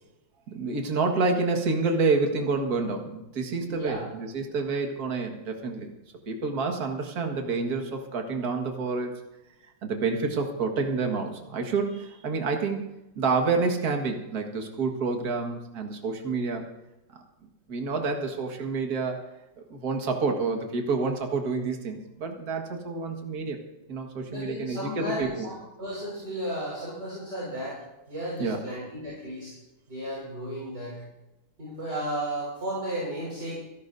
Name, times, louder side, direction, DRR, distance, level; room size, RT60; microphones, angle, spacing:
voice 1, 0.5-5.9 6.3-9.2 9.8-12.8 13.2-16.7 17.1-17.2 17.7-19.3 19.6-23.6 23.9-25.5 28.4-28.6, right 4 dB, 50° right, 3 dB, 2.1 m, -28 dB
voice 2, 3.6-4.0 24.3-27.8 28.1-29.5 29.9-31.0 31.6-33.6, right 1 dB, 30° right, -6 dB, 5.5 m, -34 dB
26.5 x 12.0 x 2.7 m, 0.94 s
omnidirectional pair, 2.2 m